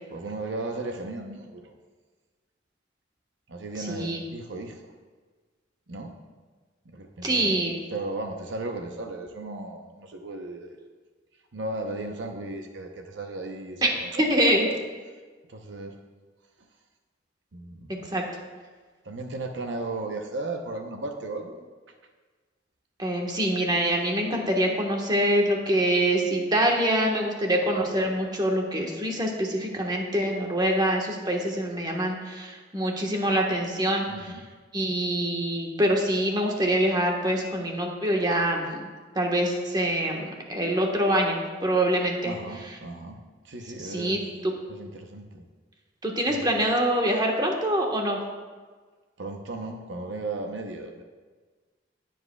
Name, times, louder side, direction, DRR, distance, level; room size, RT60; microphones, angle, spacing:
voice 1, 0.1-1.7 3.5-4.9 5.9-6.1 6.9-7.6 7.9-10.8 11.5-14.8 15.5-15.9 17.5-18.0 19.0-21.6 34.1-34.4 42.3-43.2 43.4-45.5 46.3-46.6 49.2-51.0, right 2 dB, 75° right, 4 dB, 0.8 m, -36 dB
voice 2, 3.9-4.2 7.2-7.7 13.8-13.9 14.2-14.7 17.9-18.2 23.0-34.0 34.7-38.8 39.1-42.3 43.8-44.5 46.0-48.2, right 1 dB, 20° right, 0 dB, 1.3 m, -25 dB
19.5 x 7.6 x 2.3 m, 1.4 s
head